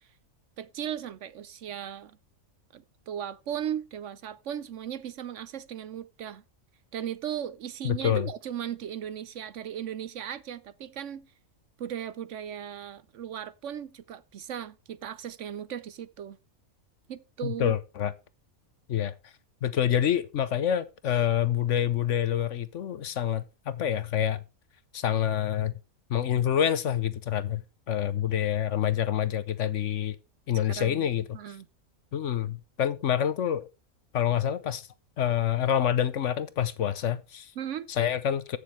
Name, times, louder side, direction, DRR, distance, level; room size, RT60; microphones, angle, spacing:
voice 1, 0.6-2.2 2.7-6.4 6.9-11.3 11.8-16.4 17.1-17.7 30.7-31.1 31.3-31.7 37.6-37.9, right 9 dB, 65° right, 0.9 m, -37 dB
voice 2, 7.8-8.3 17.4-18.1 18.9-19.1 19.6-24.4 24.9-25.7 26.1-30.2 30.5-31.2 32.1-33.6 34.1-34.9 35.2-37.5 37.9-38.6, left 10 dB, 60° left, 1.1 m, -27 dB
14.5 x 6.7 x 3.2 m
omnidirectional pair, 1.5 m